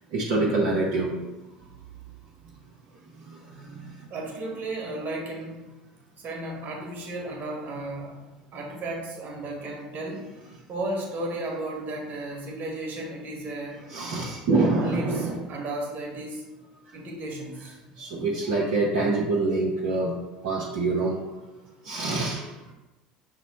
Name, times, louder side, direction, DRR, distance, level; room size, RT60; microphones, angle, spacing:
voice 1, 0.1-1.3 3.2-4.1 13.9-15.4 18.0-21.2 21.8-22.6, right 3 dB, 65° right, -4 dB, 0.8 m, -26 dB
voice 2, 4.1-5.6 6.2-8.2 8.5-10.3 10.7-13.8 14.5-16.4 16.9-17.8, right 2 dB, 45° right, -1 dB, 1.4 m, -34 dB
5.9 x 2.1 x 4.1 m, 1.0 s
hypercardioid pair, 70°, 4 cm